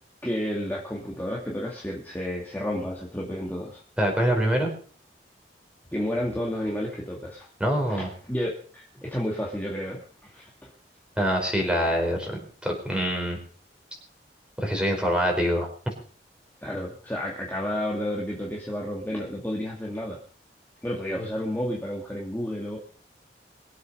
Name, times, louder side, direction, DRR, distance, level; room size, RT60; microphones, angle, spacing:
voice 1, 0.2-3.8 5.9-7.5 7.9-10.7 11.2-11.3 16.6-20.2 20.8-22.8, equal, 10° left, -2 dB, 2.3 m, -31 dB
voice 2, 4.0-4.7 7.6-8.1 11.2-13.4 14.6-15.7, equal, 5° right, 2 dB, 4.5 m, -25 dB
22.5 x 8.3 x 5.4 m, 0.43 s
head